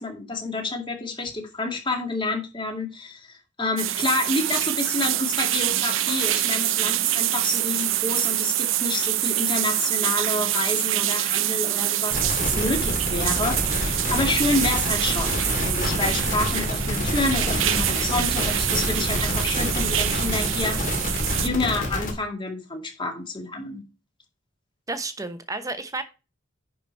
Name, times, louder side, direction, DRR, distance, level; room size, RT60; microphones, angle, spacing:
voice 1, 0.0-21.0 21.3-23.8, left 2 dB, 25° left, 2.2 m, -29 dB
sound 1, 3.8-21.5, right 13 dB, 85° right, 0.7 m, -25 dB
sound 2, 12.1-22.1, left 1 dB, 45° left, 2.8 m, -27 dB
voice 2, 24.9-26.0, right 2 dB, 15° right, 1.0 m, -31 dB
10.5 x 5.0 x 4.5 m
head